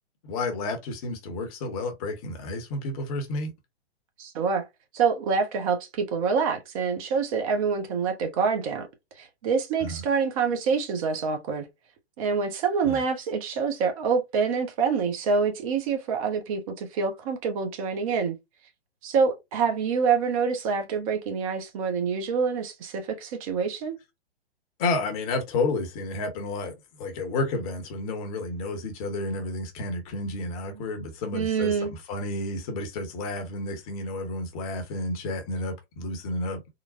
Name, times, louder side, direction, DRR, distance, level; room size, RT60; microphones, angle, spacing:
voice 1, 0.3-3.5 9.8-10.0 12.8-13.0 24.8-36.6, left 2 dB, 35° left, 1.0 m, -31 dB
voice 2, 4.2-4.7 4.9-8.9 9.2-11.7 12.2-18.4 19.0-24.0 31.3-31.9, right 5 dB, 35° right, 0.8 m, -26 dB
3.8 x 2.2 x 2.4 m
figure-of-eight pair, 115°, 32 cm